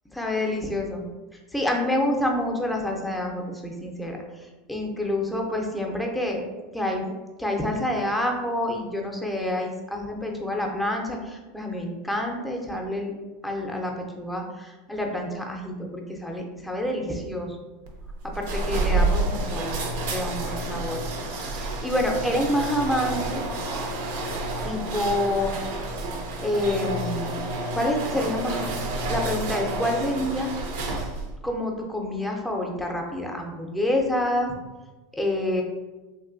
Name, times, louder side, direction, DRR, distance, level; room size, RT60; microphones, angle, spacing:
voice 1, 0.1-1.0 1.5-6.4 6.7-7.1 7.4-13.1 13.4-17.6 18.2-19.8 20.1-21.0 21.5-23.5 24.6-26.0 26.4-27.5 27.7-28.7 29.1-30.5 31.4-34.5 35.1-35.6, left 1 dB, 5° left, 1 dB, 0.5 m, -28 dB
sound 1, 17.9-31.4, right 2 dB, 75° right, 0.5 m, -29 dB
3.0 x 2.6 x 2.5 m, 1.2 s
supercardioid pair, 110°, 0 cm